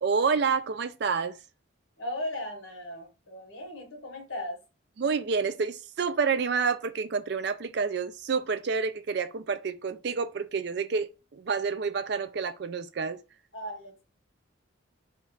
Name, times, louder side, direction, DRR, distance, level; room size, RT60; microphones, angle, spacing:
voice 1, 0.0-1.4 5.0-13.2, right 5 dB, 55° right, 0.4 m, -28 dB
voice 2, 2.0-4.6 13.5-14.0, left 1 dB, 85° left, 1.4 m, -37 dB
3.6 x 2.4 x 3.9 m
head